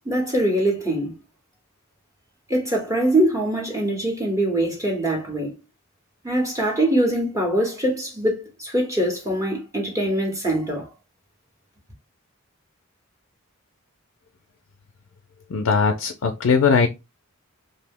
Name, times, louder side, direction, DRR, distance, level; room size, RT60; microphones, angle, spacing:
voice 1, 0.0-1.2 2.5-5.6 6.2-10.9, right 1 dB, 15° right, 0.8 m, -23 dB
voice 2, 15.5-16.9, left 5 dB, 65° left, 0.4 m, -19 dB
2.7 x 2.1 x 3.5 m
head